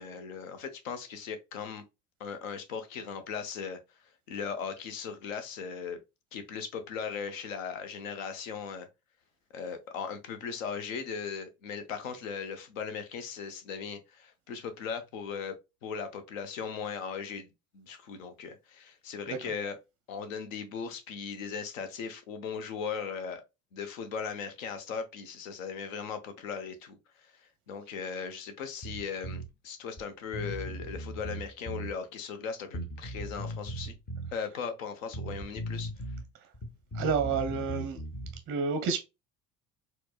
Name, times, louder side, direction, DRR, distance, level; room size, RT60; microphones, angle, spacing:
voice 1, 0.0-1.8 2.2-3.8 4.3-6.0 6.3-8.9 9.5-15.6 15.8-17.5 17.7-19.8 20.1-23.4 23.7-34.0 34.3-35.9, left 6 dB, 65° left, 0.8 m, -38 dB
Bass guitar, 28.8-29.5 30.0-30.1 30.3-31.9 32.7-34.3 35.1-36.2 36.5-38.4, right 1 dB, 20° left, 0.7 m, -38 dB
voice 2, 36.9-38.0 38.5-39.0, right 5 dB, 30° right, 0.5 m, -29 dB
4.2 x 2.1 x 2.3 m
figure-of-eight pair, 65°, 43 cm